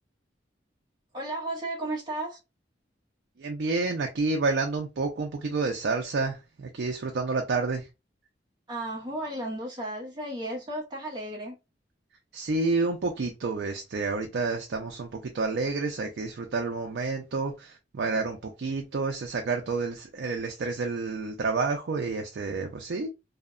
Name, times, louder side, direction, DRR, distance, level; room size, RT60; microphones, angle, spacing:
voice 1, 1.1-2.4 8.7-11.6, right 1 dB, 25° right, 0.6 m, -34 dB
voice 2, 3.4-7.9 12.3-23.1, right 3 dB, 65° right, 0.4 m, -29 dB
2.7 x 2.1 x 2.4 m
head